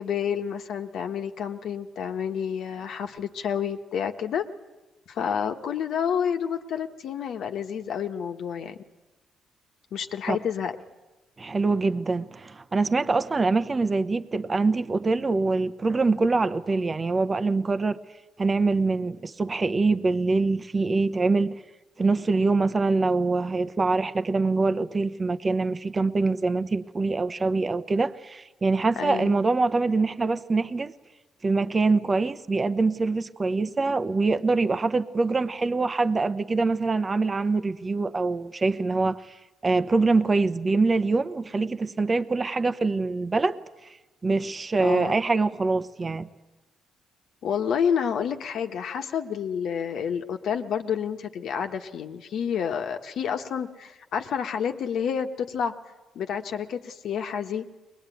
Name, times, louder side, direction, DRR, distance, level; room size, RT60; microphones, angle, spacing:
voice 1, 0.0-4.4 5.1-8.8 9.9-10.7 29.0-29.4 44.8-45.2 47.4-55.7 56.1-57.7, left 7 dB, 70° left, 1.4 m, -29 dB
voice 2, 11.4-18.0 18.4-21.6 22.0-30.9 31.4-39.4 39.6-43.6 44.2-46.3, right 3 dB, 30° right, 0.9 m, -24 dB
22.0 x 20.5 x 9.3 m
cardioid pair, 90°, 0 cm